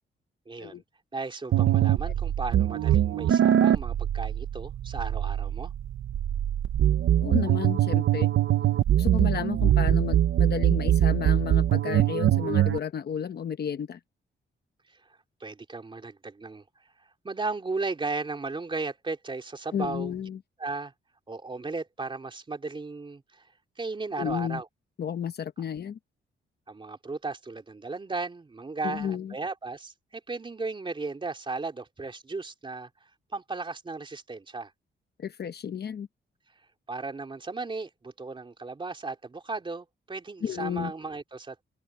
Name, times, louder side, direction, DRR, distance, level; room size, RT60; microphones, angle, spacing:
voice 1, 0.5-0.8 1.1-5.7 15.4-16.6 17.2-20.1 20.6-20.9 21.3-23.5 23.8-24.7 26.7-34.7 36.9-41.6, right 3 dB, 25° right, 3.3 m, -35 dB
sound 1, 1.5-12.8, right 11 dB, 80° right, 0.8 m, -23 dB
voice 2, 7.2-8.3 9.0-14.0 19.7-20.4 24.2-24.6 25.0-26.0 28.8-29.3 35.2-36.1 40.4-40.9, left 8 dB, 55° left, 0.9 m, -32 dB
open air
wide cardioid pair, 155°, 20 cm